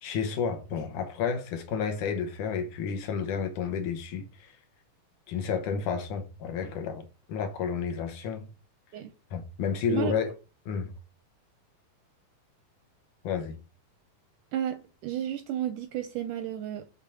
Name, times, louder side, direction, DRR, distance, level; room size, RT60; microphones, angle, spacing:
voice 1, 0.0-4.5 5.3-8.5 9.3-10.3 10.7-10.9 13.2-13.6, left 6 dB, 70° left, 2.1 m, -31 dB
voice 2, 14.5-16.9, right 11 dB, 80° right, 1.8 m, -32 dB
6.7 x 3.6 x 6.2 m
omnidirectional pair, 4.2 m